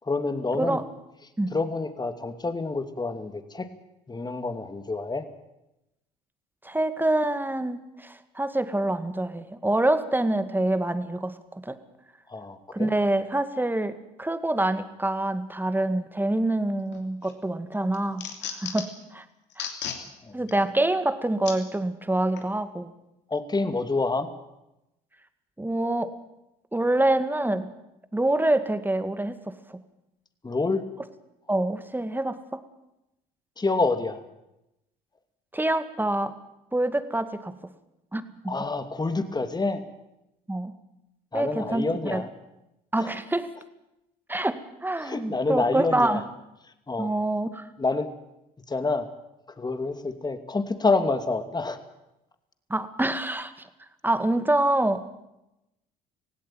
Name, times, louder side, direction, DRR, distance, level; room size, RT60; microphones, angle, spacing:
voice 1, 0.0-0.8 1.5-3.7 4.1-5.2 12.3-12.9 20.2-20.4 23.3-24.3 30.4-30.8 33.6-34.2 38.5-39.8 41.3-42.3 43.0-43.1 45.0-46.2 46.9-47.1 47.8-48.1 48.7-49.1 49.6-51.8, left 3 dB, 20° left, 8 dB, 2.6 m, -27 dB
voice 2, 6.6-11.8 12.7-19.2 19.6-19.7 20.3-22.9 25.6-26.1 26.7-27.7 28.1-29.4 29.7-29.8 31.5-32.6 35.5-36.3 36.7-37.5 38.1-38.6 40.5-40.7 41.3-41.9 42.1-42.2 42.9-43.5 44.3-46.2 47.0-47.7 52.7-53.5 54.0-55.2, right 1 dB, 10° right, 11 dB, 2.1 m, -26 dB
sound 1, 16.9-17.3 17.7-19.0 19.5-20.0 20.5-20.6 21.4-21.6 22.4-22.5, left 8 dB, 65° left, 3.2 m, -35 dB
17.5 x 17.0 x 9.2 m, 0.89 s
hypercardioid pair, 65°, 19 cm